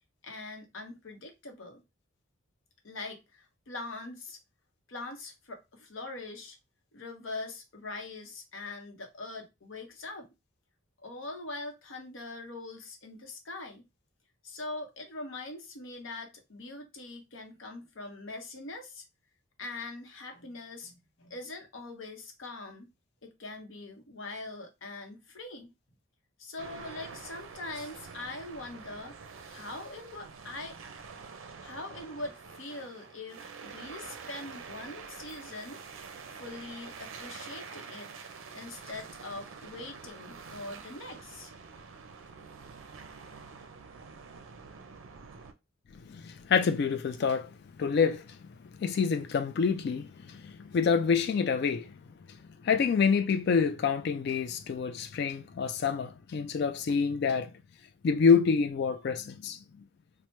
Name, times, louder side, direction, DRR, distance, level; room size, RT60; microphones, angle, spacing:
voice 1, 0.2-1.8 2.8-4.4 4.9-6.6 6.9-10.3 11.0-13.9 14.4-19.0 19.6-20.9 21.2-22.9 23.2-25.7 26.4-29.2 29.5-30.8 31.6-35.8 36.3-38.1 38.5-41.5, left 2 dB, 70° left, 0.8 m, -42 dB
sound 1, 26.6-45.5, right 5 dB, 70° right, 0.5 m, -47 dB
voice 2, 46.1-48.4 48.8-51.9 52.6-57.5 58.0-59.6, left 5 dB, 50° left, 0.3 m, -27 dB
3.0 x 2.0 x 3.1 m
head